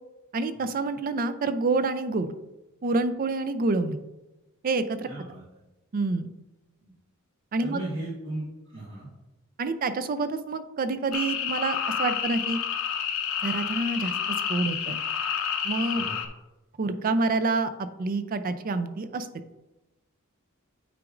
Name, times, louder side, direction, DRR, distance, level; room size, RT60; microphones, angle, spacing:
voice 1, 0.3-2.3 2.8-4.0 4.6-5.1 5.9-6.3 7.5-7.8 9.6-12.6 13.4-15.0 15.6-16.1 16.8-19.3, right 3 dB, 40° right, 11 dB, 0.4 m, -27 dB
voice 2, 5.0-5.4 6.8-6.9 7.6-9.1 15.9-16.1, right 1 dB, 60° right, -6 dB, 1.4 m, -36 dB
sound 1, 11.1-16.3, left 7 dB, 80° left, 0.7 m, -29 dB
8.9 x 4.9 x 2.5 m, 1.0 s
head